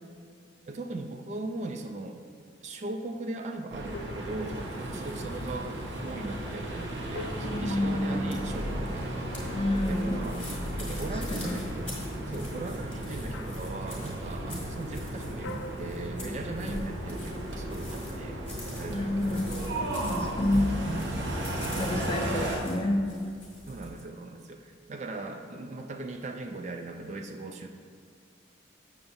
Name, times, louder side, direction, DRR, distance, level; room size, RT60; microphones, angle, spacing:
voice 1, 0.7-2.2 2.6-9.3 9.9-10.4 10.8-11.9 12.3-18.4 18.7-19.4 23.7-27.7, right 2 dB, 35° right, 5 dB, 0.3 m, -39 dB
sound 1, 3.7-22.6, right 1 dB, 65° right, 0.8 m, -34 dB
sound 2, 3.9-4.9 7.1-8.9 11.4-11.9 13.3-13.8 15.4-16.7, left 1 dB, 85° left, 0.4 m, -44 dB
voice 2, 7.4-8.2 9.5-10.2 11.1-11.6 16.6-16.9 18.9-19.6 20.1-20.7 21.8-23.2, left 1 dB, 30° left, 3 dB, 0.5 m, -29 dB
sound 3, 7.5-24.0, left 1 dB, 5° left, 1.5 m, -47 dB
7.1 x 6.7 x 2.6 m, 2.2 s
head